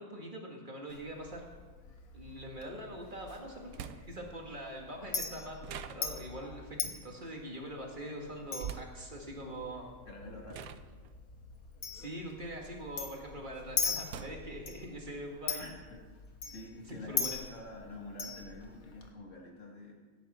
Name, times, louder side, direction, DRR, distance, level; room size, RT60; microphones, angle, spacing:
voice 1, 0.0-1.4 2.1-9.9 11.9-15.6 16.9-17.4, right 1 dB, 35° right, 0 dB, 2.2 m, -43 dB
Chink clink, 0.9-19.1, left 5 dB, 85° left, 1.7 m, -41 dB
sound 1, 0.9-1.0 3.0-3.1 3.7-4.4 5.6-6.5 8.6-9.1 9.9-10.1 10.5-12.9 13.3-14.8, right 9 dB, 90° right, 1.1 m, -46 dB
voice 2, 10.1-10.7 15.6-16.0 16.4-19.9, left 2 dB, 60° left, 0 dB, 2.4 m, -47 dB
17.0 x 10.5 x 4.4 m, 1.4 s
omnidirectional pair, 1.5 m